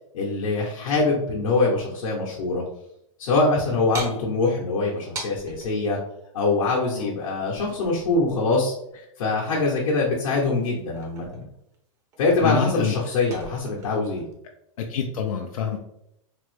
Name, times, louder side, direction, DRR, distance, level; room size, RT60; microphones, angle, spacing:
voice 1, 0.1-2.6 3.2-6.0 6.3-8.7 9.2-11.5 12.2-14.3, left 3 dB, 70° left, -3 dB, 0.8 m, -23 dB
sound 1, 3.9-5.8 7.5-8.6 10.6-11.8 12.1-14.3, right 3 dB, 20° right, 0.4 m, -40 dB
voice 2, 12.4-12.9 14.9-15.8, left 7 dB, 85° left, 2 dB, 0.4 m, -26 dB
3.4 x 2.0 x 3.1 m, 0.78 s
supercardioid pair, 160°, 17 cm